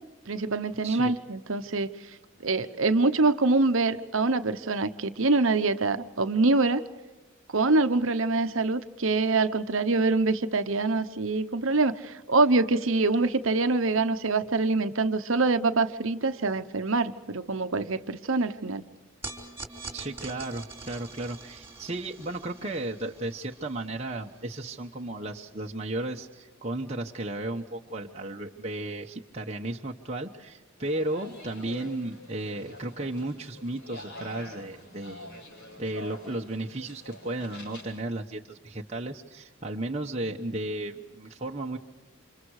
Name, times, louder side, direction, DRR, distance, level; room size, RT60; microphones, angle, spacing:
voice 1, 0.3-1.9 2.4-6.8 7.5-18.8, right 3 dB, 65° right, 10 dB, 1.0 m, -25 dB
voice 2, 0.8-1.1 19.9-35.4 35.8-41.8, right 2 dB, 30° right, 0 dB, 1.0 m, -34 dB
sound 1, 19.2-25.6, right 3 dB, 10° right, 3.3 m, -45 dB
sound 2, 30.8-38.0, left 1 dB, 55° left, 7.7 m, -46 dB
29.0 x 26.5 x 4.8 m, 1.1 s
head